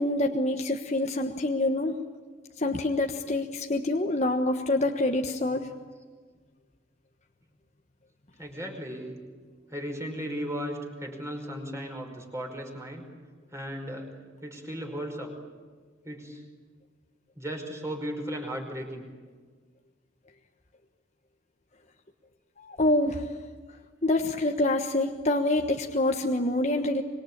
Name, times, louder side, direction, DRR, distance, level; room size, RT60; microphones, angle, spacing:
voice 1, 0.0-2.0 2.6-5.7 22.6-23.3 24.0-27.0, left 2 dB, 35° left, 3 dB, 1.3 m, -26 dB
voice 2, 8.4-9.2 9.7-13.1 13.5-14.1 14.4-15.3 16.0-16.4 17.3-19.1, equal, 15° right, 2 dB, 5.1 m, -36 dB
25.5 x 23.0 x 8.8 m, 1.5 s
head